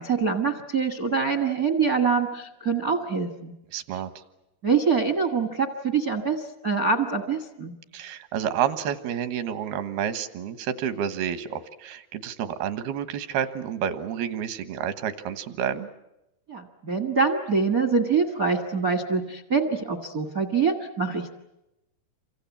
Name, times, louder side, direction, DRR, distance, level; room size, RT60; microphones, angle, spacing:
voice 1, 0.0-3.5 4.6-7.7 16.5-21.3, right 5 dB, 60° right, 8 dB, 0.9 m, -25 dB
voice 2, 3.7-4.1 7.9-15.9, right 9 dB, 85° right, 11 dB, 3.3 m, -29 dB
28.5 x 25.0 x 7.2 m, 0.90 s
omnidirectional pair, 4.4 m